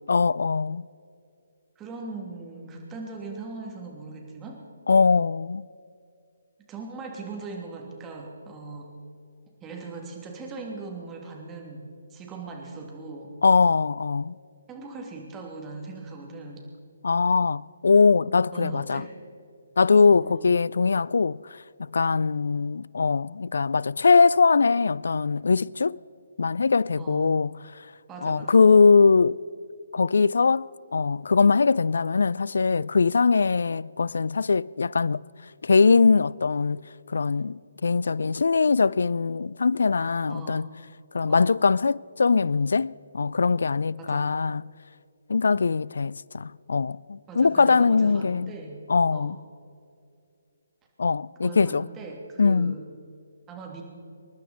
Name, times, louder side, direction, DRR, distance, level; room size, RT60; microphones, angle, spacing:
voice 1, 0.1-0.8 4.9-5.7 13.4-14.3 17.0-19.0 19.8-21.4 21.9-26.0 26.4-27.5 28.2-29.4 29.9-35.2 35.6-36.8 37.1-40.6 41.1-44.7 45.3-48.5 48.9-49.4 51.0-51.9 52.4-52.8, left 4 dB, 65° left, 0.3 m, -21 dB
voice 2, 1.8-4.6 6.7-8.9 9.6-13.3 14.7-16.7 18.5-19.1 20.1-20.5 27.0-27.4 28.1-28.6 40.3-40.7 41.2-41.5 44.0-44.4 47.3-48.8 49.1-49.4 51.4-52.8 53.5-53.8, right 3 dB, 15° right, 2.8 m, -40 dB
27.5 x 11.5 x 4.3 m
figure-of-eight pair, 140°, 0 cm